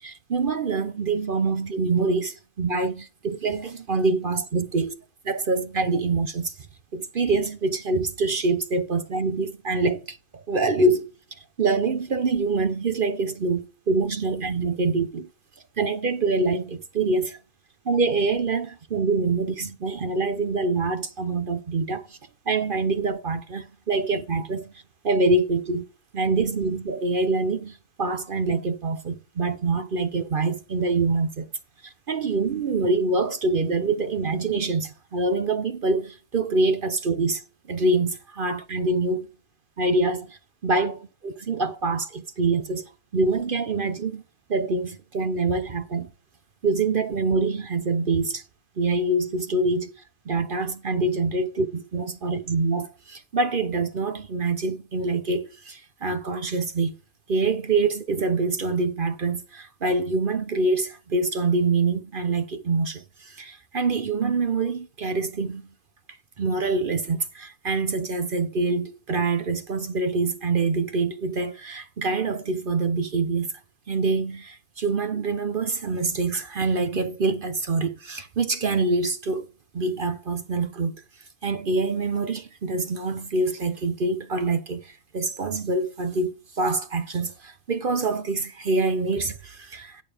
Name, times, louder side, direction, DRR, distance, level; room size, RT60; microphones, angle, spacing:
voice 1, 0.0-4.9 5.2-6.7 6.9-15.3 15.8-17.4 17.8-22.2 22.5-25.9 26.1-31.5 31.8-37.4 37.7-39.3 39.8-42.8 43.1-44.2 44.5-46.1 46.6-48.4 48.8-49.9 50.3-56.9 57.3-65.7 66.4-73.5 73.9-79.5 79.7-81.0 81.4-90.0, right 3 dB, 45° right, 0.8 m, -25 dB
9.0 x 8.8 x 3.4 m
omnidirectional pair, 1.5 m